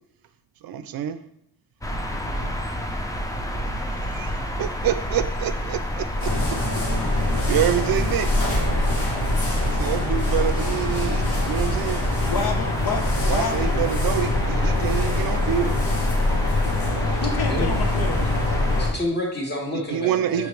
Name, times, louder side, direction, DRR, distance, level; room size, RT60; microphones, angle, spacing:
voice 1, 0.6-1.2 2.1-2.6 3.5-6.3 7.2-8.4 9.6-12.0 13.3-15.8 17.9-18.6 19.7-20.5, right 10 dB, 65° right, 11 dB, 0.5 m, -28 dB
sound 1, 1.8-18.9, equal, 10° left, 0.5 m, -29 dB
sound 2, 6.2-18.9, left 2 dB, 90° left, 1.3 m, -24 dB
voice 2, 12.3-13.8 17.2-18.3, left 4 dB, 65° left, 5 dB, 0.8 m, -29 dB
voice 3, 16.9-17.7 18.7-20.5, left 1 dB, 25° left, -2 dB, 1.4 m, -30 dB
5.0 x 3.3 x 3.2 m, 0.77 s
cardioid pair, 75°, 39 cm